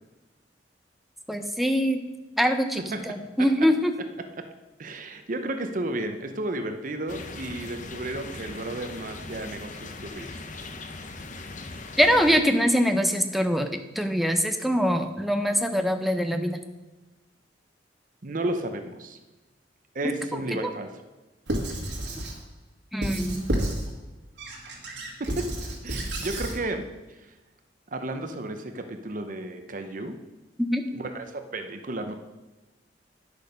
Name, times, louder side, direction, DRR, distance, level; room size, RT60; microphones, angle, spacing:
voice 1, 1.3-2.0 2.4-3.9 12.0-16.6 20.5-20.7 22.9-23.4 30.6-30.8, equal, ahead, 6 dB, 0.7 m, -23 dB
voice 2, 4.8-10.4 18.2-19.2 19.9-20.9 25.2-26.9 27.9-30.2 30.9-32.1, right 1 dB, 50° right, 7 dB, 0.8 m, -33 dB
sound 1, 7.1-12.4, left 3 dB, 45° left, 0.8 m, -39 dB
Squeak / Writing, 21.5-22.4 23.0-23.9 24.4-26.6, right 1 dB, 80° right, 2.0 m, -31 dB
10.5 x 6.5 x 5.2 m, 1.1 s
head